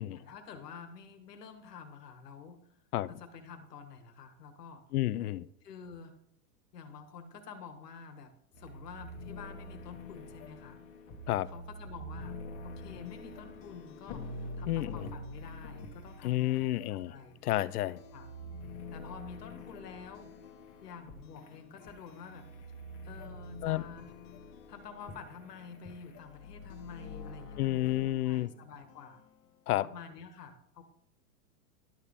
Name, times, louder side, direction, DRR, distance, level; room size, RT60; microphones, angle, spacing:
voice 1, 0.1-2.6 3.1-4.8 5.6-6.2 6.7-10.8 11.5-17.4 18.1-18.3 18.9-20.3 20.8-22.5 23.0-24.1 24.7-29.2 29.8-30.8, left 5 dB, 90° left, 1.7 m, -49 dB
voice 2, 4.9-5.5 11.3-11.5 14.7-15.1 16.2-17.1 17.4-18.0 23.6-23.8 27.6-28.5 29.7-29.9, left 15 dB, 70° left, 0.6 m, -30 dB
sound 1, 8.5-28.1, left 2 dB, 30° left, 1.4 m, -46 dB
sound 2, 12.8-29.7, left 7 dB, 50° left, 1.3 m, -60 dB
12.0 x 6.6 x 3.6 m
supercardioid pair, 150°, 46 cm